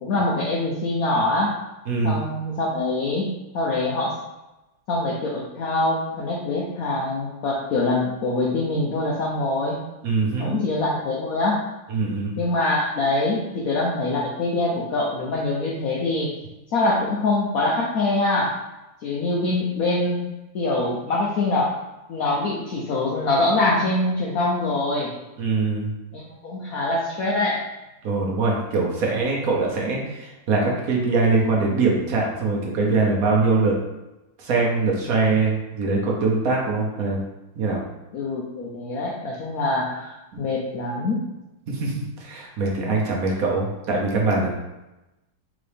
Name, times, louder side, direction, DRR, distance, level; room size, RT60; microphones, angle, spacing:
voice 1, 0.0-1.6 2.0-4.1 4.9-9.8 10.4-11.6 12.4-16.3 16.7-18.6 19.0-20.2 20.5-21.7 22.1-25.1 26.1-27.6 35.0-35.1 38.1-41.2, left 2 dB, 80° left, -4 dB, 0.7 m, -24 dB
voice 2, 1.9-2.2 10.0-10.6 11.9-12.4 25.4-25.9 28.0-33.8 34.4-37.2 37.6-37.8 41.7-44.5, right 3 dB, 55° right, -2 dB, 1.1 m, -22 dB
4.1 x 3.7 x 3.3 m, 0.99 s
omnidirectional pair, 2.3 m